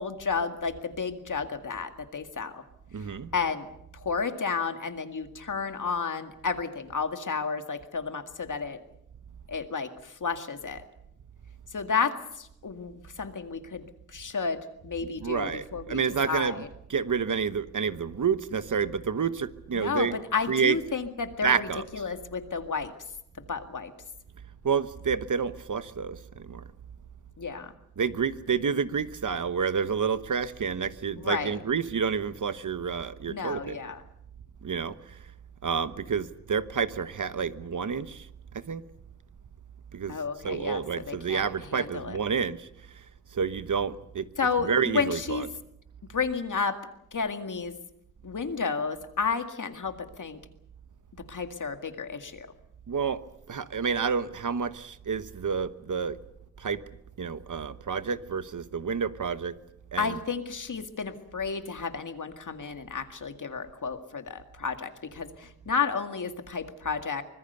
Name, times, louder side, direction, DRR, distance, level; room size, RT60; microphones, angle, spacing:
voice 1, 0.0-2.6 3.0-3.7 3.9-8.8 9.5-10.8 11.7-16.0 16.3-16.7 19.7-22.9 23.5-23.9 27.4-27.7 31.2-31.6 33.3-34.0 40.1-42.2 44.4-45.5 46.1-46.8 47.1-47.7 48.2-50.4 51.3-52.5 60.0-67.2, left 5 dB, 70° left, 7 dB, 2.0 m, -32 dB
voice 2, 2.9-3.3 15.2-16.6 16.9-20.8 21.4-22.0 24.6-26.6 28.0-33.8 34.6-35.2 35.6-38.3 38.5-38.8 39.9-40.2 40.4-42.7 42.9-43.0 43.3-45.5 52.9-53.2 53.5-56.2 56.6-56.8 57.2-59.5 59.9-60.2, right 6 dB, 75° right, 13 dB, 1.1 m, -29 dB
24.5 x 21.0 x 6.8 m, 0.77 s
wide cardioid pair, 100°, 32 cm